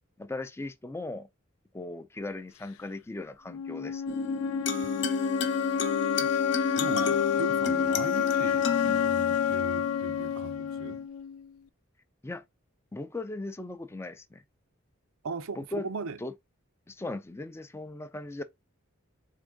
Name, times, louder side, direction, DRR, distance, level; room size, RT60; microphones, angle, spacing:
voice 1, 0.2-1.3 1.7-4.0 12.2-12.4 12.9-14.4 15.6-15.9 16.2-16.3 16.9-18.4, left 2 dB, 10° left, 0.3 m, -38 dB
sound 1, 3.5-11.5, left 8 dB, 90° left, 0.4 m, -29 dB
sound 2, 4.1-11.0, left 4 dB, 55° left, 0.7 m, -32 dB
voice 2, 6.8-11.0 15.2-16.2, right 4 dB, 80° right, 0.5 m, -39 dB
3.7 x 3.5 x 3.6 m
head